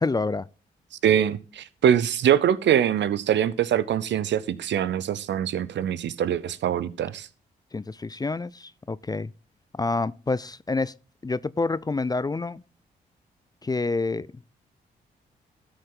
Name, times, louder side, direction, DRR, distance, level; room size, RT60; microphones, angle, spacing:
voice 1, 0.0-0.5 7.7-9.3 9.7-10.9 11.2-12.6 13.6-14.3, left 3 dB, 20° left, 0.4 m, -27 dB
voice 2, 1.0-7.3, right 9 dB, 65° right, 0.7 m, -23 dB
13.0 x 6.4 x 3.8 m
supercardioid pair, 45°, 20 cm